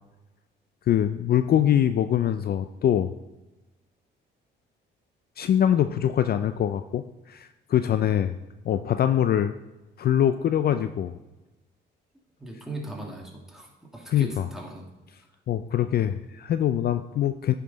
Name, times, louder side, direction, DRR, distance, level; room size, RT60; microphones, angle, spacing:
voice 1, 0.9-3.1 5.4-8.4 8.7-9.5 10.0-11.2 14.1-14.5 15.5-17.5, left 10 dB, 50° left, 10 dB, 0.4 m, -23 dB
voice 2, 12.4-14.8, right 1 dB, ahead, -2 dB, 2.0 m, -39 dB
9.4 x 5.7 x 4.0 m, 1.1 s
cardioid pair, 90°, 20 cm